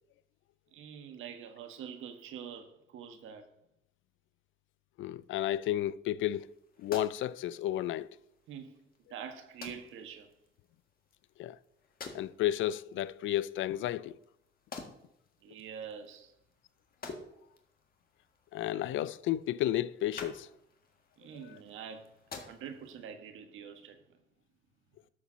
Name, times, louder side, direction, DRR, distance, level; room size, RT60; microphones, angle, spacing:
voice 1, 0.7-3.5 8.5-10.3 15.4-16.3 18.6-18.8 21.2-22.1 22.5-24.0, right 7 dB, 85° right, 1.3 m, -45 dB
voice 2, 5.0-6.5 6.8-8.1 11.4-11.6 12.1-14.1 18.5-20.5 21.5-21.6, left 13 dB, 80° left, 0.4 m, -32 dB
sound 1, 6.4-23.0, left 4 dB, 50° left, 1.7 m, -51 dB
12.5 x 4.2 x 6.1 m
cardioid pair, 90°, 20 cm